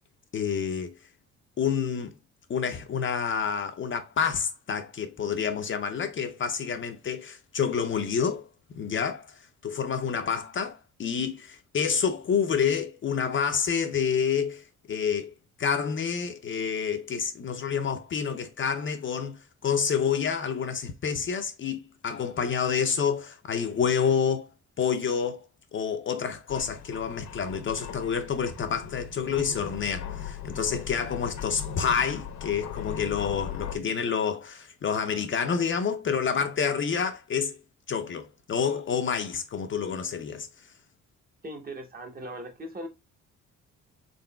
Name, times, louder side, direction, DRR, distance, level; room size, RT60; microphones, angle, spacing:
voice 1, 0.3-0.9 1.6-2.2 2.5-8.5 8.7-15.3 15.6-24.5 24.8-25.4 25.7-37.6 37.9-40.7, left 7 dB, 40° left, 0.5 m, -28 dB
sound 1, 26.5-33.8, left 8 dB, 65° left, 0.8 m, -38 dB
voice 2, 41.4-42.9, right 1 dB, 30° right, 1.0 m, -39 dB
3.8 x 3.7 x 2.2 m
cardioid pair, 90°, 30 cm